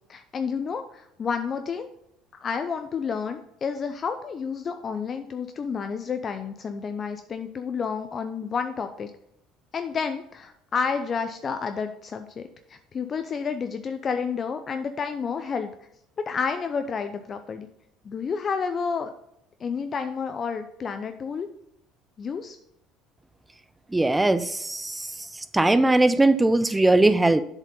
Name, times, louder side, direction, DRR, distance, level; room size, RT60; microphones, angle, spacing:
voice 1, 0.1-1.9 2.4-9.1 9.7-15.7 16.3-17.7 18.0-19.1 19.6-21.5 22.2-22.6, left 6 dB, 35° left, 8 dB, 0.6 m, -30 dB
voice 2, 23.9-25.1 25.5-27.4, right 2 dB, 10° right, 13 dB, 0.5 m, -20 dB
7.5 x 5.2 x 5.3 m, 0.78 s
supercardioid pair, 95°, 0 cm